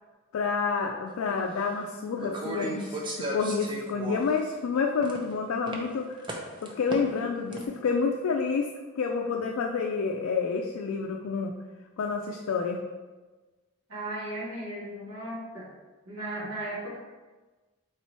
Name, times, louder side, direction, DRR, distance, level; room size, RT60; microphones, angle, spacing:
voice 1, 0.3-6.3 6.6-8.7 9.0-11.5 12.0-12.8, left 5 dB, 80° left, 2 dB, 0.3 m, -29 dB
sound 1, 1.3-1.4 2.2-4.4 4.8-5.3 5.7-5.8 6.2-7.2 7.5-7.6, right 1 dB, 20° right, 0.5 m, -35 dB
voice 2, 13.9-15.7 16.0-17.0, right 1 dB, 85° right, -10 dB, 1.4 m, -36 dB
3.6 x 3.0 x 4.2 m, 1.3 s
head